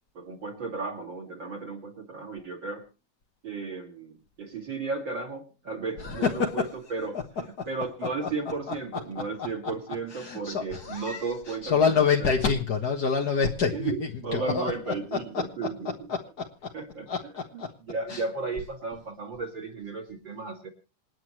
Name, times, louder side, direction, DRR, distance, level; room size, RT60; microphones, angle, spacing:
voice 1, 0.1-2.8 3.4-7.2 7.7-12.3 13.7-15.9 16.7-17.1 17.9-20.7, right 4 dB, 40° right, 5 dB, 2.6 m, -34 dB
voice 2, 6.0-6.7 7.6-7.7 8.7-8.8 9.4-9.7 10.1-15.4 15.8-16.7 17.1-17.7 18.1-18.2, left 5 dB, 55° left, 1 dB, 1.1 m, -28 dB
27.5 x 9.4 x 3.2 m, 0.33 s
omnidirectional pair, 3.7 m